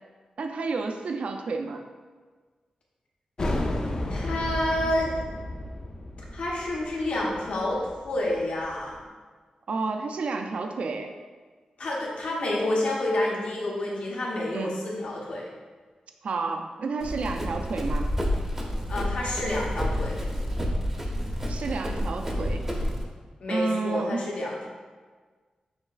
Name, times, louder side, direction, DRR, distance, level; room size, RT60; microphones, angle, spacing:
voice 1, 0.4-1.8 9.7-11.1 14.5-14.8 16.2-18.1 21.5-22.6 23.5-24.2, right 4 dB, 65° right, 5 dB, 0.3 m, -30 dB
sound 1, 3.4-8.7, left 1 dB, 35° left, 0.4 m, -32 dB
voice 2, 4.1-5.1 6.3-9.0 11.8-15.5 18.9-20.2 23.4-24.7, left 1 dB, 75° left, -4 dB, 1.0 m, -29 dB
Run, 17.0-23.0, equal, 15° right, 0.6 m, -29 dB
6.3 x 2.9 x 2.4 m, 1.4 s
wide cardioid pair, 130°, 2 cm